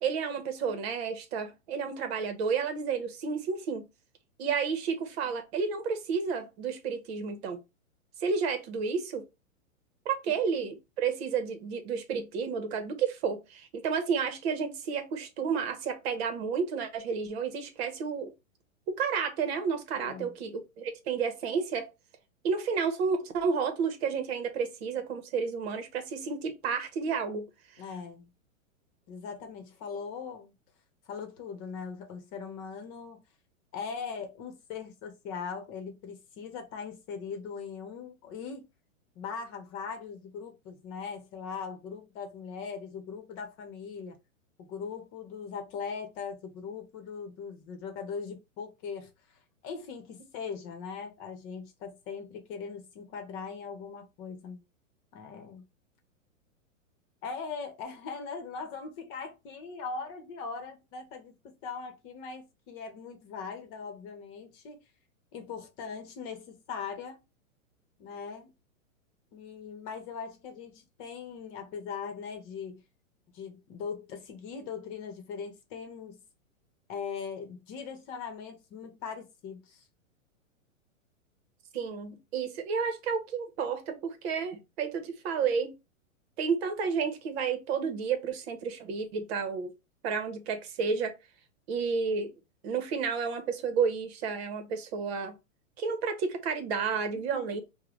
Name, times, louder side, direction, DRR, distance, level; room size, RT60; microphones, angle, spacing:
voice 1, 0.0-3.9 4.4-7.6 8.2-9.3 10.0-18.3 18.9-21.9 22.4-27.5 81.7-85.7 86.4-89.7 90.0-91.2 91.7-92.3 92.6-95.4 95.8-97.6, right 5 dB, 50° right, 1.0 m, -31 dB
voice 2, 20.0-20.3 27.8-28.3 29.1-30.5 31.1-33.2 33.7-38.7 39.2-44.2 44.6-49.1 49.6-54.6 55.1-55.6 57.2-64.8 65.3-67.2 68.0-68.5 69.3-72.8 73.3-76.2 76.9-79.8 97.1-97.6, left 5 dB, 35° left, 1.0 m, -40 dB
4.7 x 2.2 x 3.0 m
hypercardioid pair, 125°, 40 cm